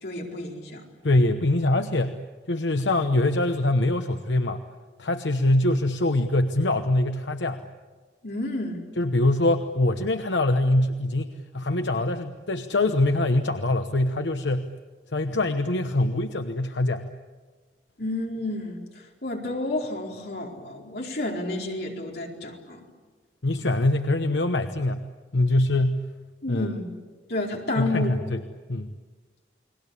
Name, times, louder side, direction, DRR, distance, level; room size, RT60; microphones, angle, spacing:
voice 1, 0.0-0.8 8.2-8.8 18.0-22.8 26.4-26.9 27.3-28.1, left 2 dB, 60° left, -1 dB, 4.4 m, -30 dB
voice 2, 1.0-2.2 2.5-4.6 5.0-7.6 9.0-14.7 15.1-17.0 23.4-25.0 25.3-26.0 26.5-26.7 27.8-28.4 28.7-28.9, left 2 dB, 85° left, 7 dB, 1.0 m, -23 dB
30.0 x 21.0 x 8.4 m, 1.4 s
head